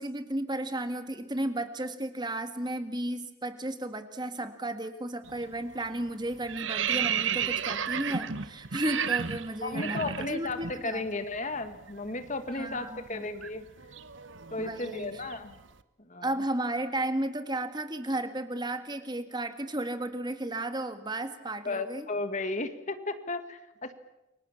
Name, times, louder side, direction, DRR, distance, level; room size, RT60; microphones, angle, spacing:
voice 1, 0.0-11.0 12.5-13.2 14.6-15.1 16.2-22.1, right 1 dB, 20° right, 9 dB, 1.8 m, -34 dB
sound 1, 5.2-5.5 5.8-10.8 11.1-11.3 11.6-15.6, right 8 dB, 70° right, 1.2 m, -33 dB
voice 2, 9.6-13.6 14.5-15.6 16.0-16.3 21.6-23.9, left 2 dB, 35° left, 9 dB, 1.7 m, -34 dB
29.0 x 24.0 x 7.2 m, 0.93 s
head